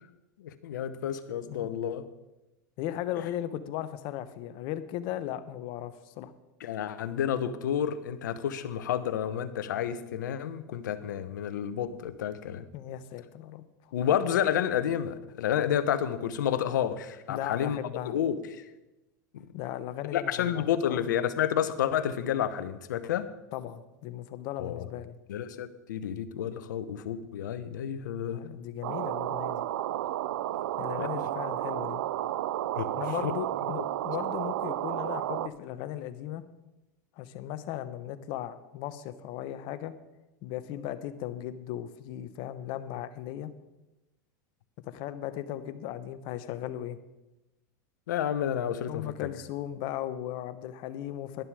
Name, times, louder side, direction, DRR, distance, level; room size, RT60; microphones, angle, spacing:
voice 1, 0.4-2.0 6.6-12.6 13.9-17.8 18.0-18.6 19.3-19.4 20.1-23.3 24.6-24.8 25.3-28.5 31.0-31.1 32.8-32.9 33.2-33.3 48.1-49.3, left 9 dB, 80° left, 13 dB, 0.9 m, -30 dB
voice 2, 2.8-6.3 12.7-13.9 17.3-18.2 19.5-21.1 23.5-25.1 28.3-29.6 30.8-32.0 32.9-36.4 37.2-39.9 40.4-43.5 44.8-47.0 48.9-51.4, left 12 dB, 55° left, 12 dB, 1.0 m, -37 dB
sound 1, 28.8-35.5, right 13 dB, 75° right, 0.5 m, -32 dB
11.5 x 11.0 x 4.9 m, 1.0 s
hypercardioid pair, 105°, 10 cm